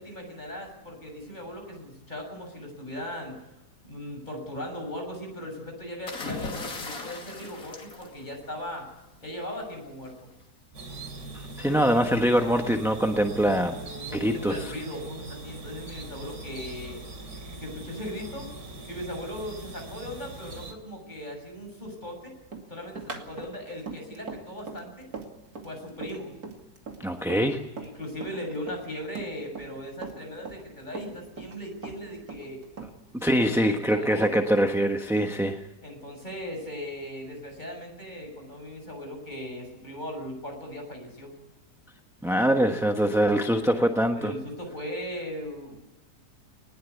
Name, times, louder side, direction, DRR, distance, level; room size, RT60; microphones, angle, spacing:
voice 1, 0.0-3.3 3.9-8.9 9.2-10.1 13.4-17.0 17.6-18.5 18.9-22.3 22.7-25.1 25.6-26.3 27.8-32.6 33.3-34.4 35.8-41.4 44.2-45.8, equal, 25° left, 2 dB, 7.1 m, -38 dB
sound 1, 6.1-8.8 10.1-10.4, left 3 dB, 55° left, 3.0 m, -38 dB
sound 2, 10.7-20.7, right 3 dB, 90° right, 3.7 m, -41 dB
voice 2, 11.6-13.8 14.1-14.6 27.0-27.7 33.1-35.6 42.2-44.3, equal, ahead, 4 dB, 1.0 m, -23 dB
Run, 22.5-27.9 28.2-29.8 30.0-31.6 31.8-33.2, right 4 dB, 60° right, 3.0 m, -40 dB
20.0 x 20.0 x 8.4 m, 1.0 s
omnidirectional pair, 1.8 m